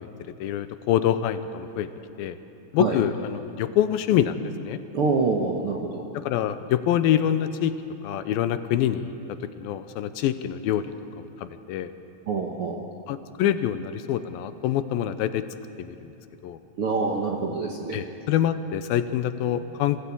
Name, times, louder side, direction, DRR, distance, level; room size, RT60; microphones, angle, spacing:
voice 1, 0.4-1.9 2.2-2.4 2.7-4.8 6.3-7.7 8.0-9.1 9.6-10.9 11.4-11.9 13.1-15.4 15.8-16.1 16.4-16.6 17.9-20.0, left 10 dB, 85° left, 11 dB, 2.5 m, -25 dB
voice 2, 4.9-6.0 12.3-12.8 16.8-18.0, right 4 dB, 65° right, 1 dB, 1.4 m, -26 dB
26.0 x 16.5 x 8.5 m, 2.9 s
omnidirectional pair, 4.3 m